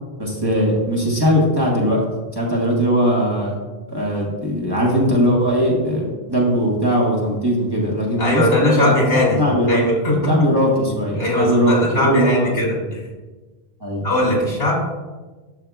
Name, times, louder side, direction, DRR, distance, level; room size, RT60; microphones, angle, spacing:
voice 1, 0.2-2.0 2.3-3.6 3.9-9.8 10.3-12.5 13.8-14.1, equal, 25° right, -4 dB, 1.3 m, -19 dB
voice 2, 8.2-10.3 11.1-13.0 14.0-14.8, left 1 dB, 80° left, -3 dB, 2.4 m, -20 dB
12.5 x 4.8 x 2.3 m, 1.3 s
omnidirectional pair, 1.0 m